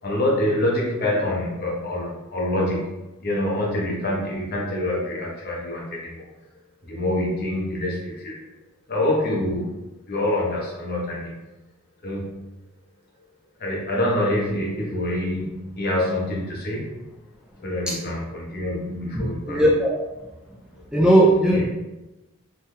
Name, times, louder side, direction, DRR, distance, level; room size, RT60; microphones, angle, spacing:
voice 1, 0.0-6.2 6.8-8.4 8.9-11.4 12.0-12.4 13.6-16.9 17.6-19.6 20.8-20.9 21.5-21.7, left 1 dB, 50° left, -3 dB, 0.9 m, -26 dB
voice 2, 19.5-20.0 20.9-21.7, right 1 dB, 5° right, -4 dB, 0.4 m, -17 dB
3.3 x 2.8 x 2.2 m, 1.0 s
head